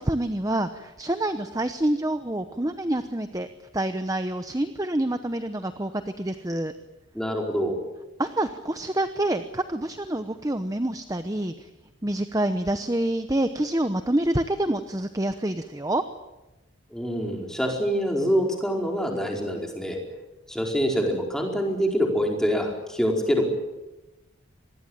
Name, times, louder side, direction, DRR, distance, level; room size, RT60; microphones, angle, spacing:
voice 1, 0.0-3.5 3.7-6.7 8.2-11.7 12.0-16.0, right 1 dB, 15° right, 9 dB, 0.9 m, -27 dB
voice 2, 7.1-7.8 16.9-20.0 20.5-23.4, equal, 5° left, 1 dB, 4.7 m, -25 dB
26.0 x 20.5 x 9.0 m, 1.0 s
head